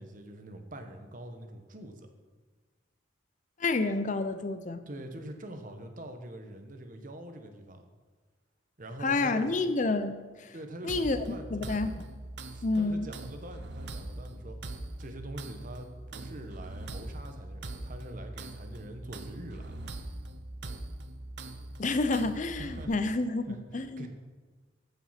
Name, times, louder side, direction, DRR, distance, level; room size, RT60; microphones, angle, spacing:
voice 1, 0.0-2.1 4.9-7.8 8.8-9.6 10.5-11.8 12.5-19.8 22.3-22.9 23.5-24.1, right 1 dB, 45° right, 5 dB, 1.2 m, -44 dB
voice 2, 3.6-4.8 9.0-10.5 10.8-11.3 11.5-12.1 12.6-13.1 21.8-24.1, left 3 dB, 40° left, 10 dB, 0.6 m, -29 dB
sound 1, 10.9-22.8, right 2 dB, 60° right, 0.8 m, -42 dB
14.5 x 5.7 x 5.8 m, 1.4 s
head